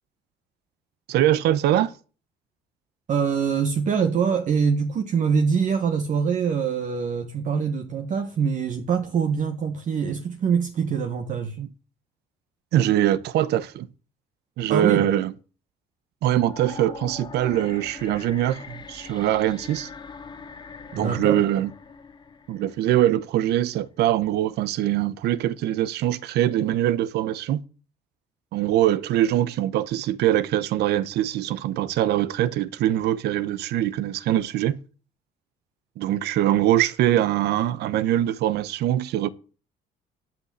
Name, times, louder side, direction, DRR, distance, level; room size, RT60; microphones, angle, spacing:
voice 1, 1.1-1.9 11.6-11.7 12.7-13.9 14.6-15.3 16.2-19.9 20.9-21.7 22.5-27.6 28.5-34.8 36.0-39.3, right 12 dB, 75° right, 0.9 m, -23 dB
voice 2, 3.1-11.6 14.7-15.0 20.9-21.4, right 6 dB, 50° right, 1.5 m, -24 dB
sound 1, 16.3-23.4, left 5 dB, 25° left, 1.2 m, -42 dB
11.0 x 6.0 x 7.9 m
cardioid pair, 110°, 17 cm